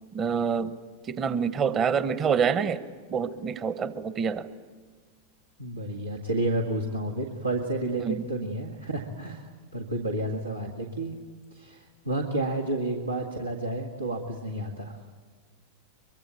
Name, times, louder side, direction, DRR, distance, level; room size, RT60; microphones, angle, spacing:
voice 1, 0.1-0.8 1.1-2.8 3.1-4.5 8.0-8.2, right 6 dB, 25° right, 14 dB, 1.2 m, -26 dB
voice 2, 5.6-11.1 11.5-15.0, right 1 dB, 80° right, 1 dB, 1.9 m, -31 dB
23.5 x 23.0 x 9.5 m, 1.5 s
figure-of-eight pair, 90°, 0 cm